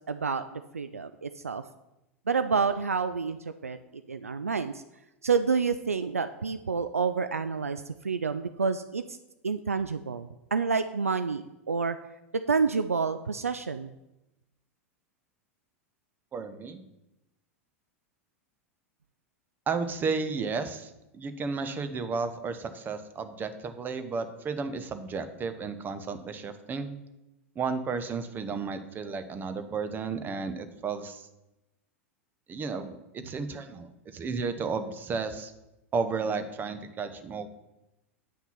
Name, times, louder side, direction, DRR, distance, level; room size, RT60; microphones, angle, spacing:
voice 1, 0.0-1.6 2.3-3.4 3.6-3.8 4.1-4.7 5.2-9.2 9.4-12.0 12.3-13.9, right 5 dB, 85° right, 11 dB, 0.3 m, -28 dB
voice 2, 16.3-16.8 19.7-26.9 27.5-31.3 32.5-35.5 35.9-37.5, right 4 dB, 25° right, 10 dB, 0.9 m, -33 dB
8.9 x 5.9 x 5.7 m, 0.94 s
figure-of-eight pair, 85°, 8 cm